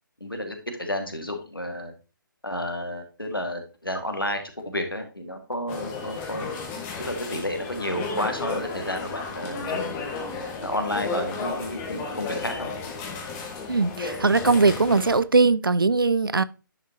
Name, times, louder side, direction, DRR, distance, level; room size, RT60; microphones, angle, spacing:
voice 1, 0.2-1.9 2.4-6.5 7.0-10.1 10.6-12.7, left 1 dB, 90° left, 1.9 m, -31 dB
sound 1, 5.7-15.2, left 4 dB, 20° left, 1.3 m, -33 dB
voice 2, 13.7-16.4, right 3 dB, 80° right, 0.4 m, -20 dB
10.0 x 5.8 x 2.8 m
figure-of-eight pair, 140°, 11 cm